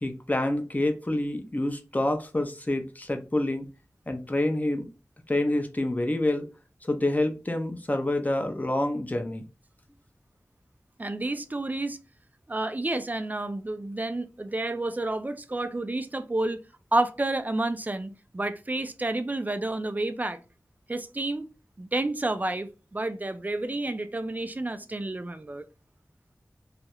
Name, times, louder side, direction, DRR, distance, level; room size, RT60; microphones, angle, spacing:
voice 1, 0.0-3.7 4.1-4.8 5.3-6.5 6.8-9.4, left 1 dB, 25° left, 0.5 m, -27 dB
voice 2, 11.0-12.0 12.5-16.6 16.9-20.4 20.9-21.5 21.8-25.7, right 2 dB, 30° right, 0.3 m, -30 dB
2.3 x 2.0 x 2.8 m
wide cardioid pair, 45°, 6 cm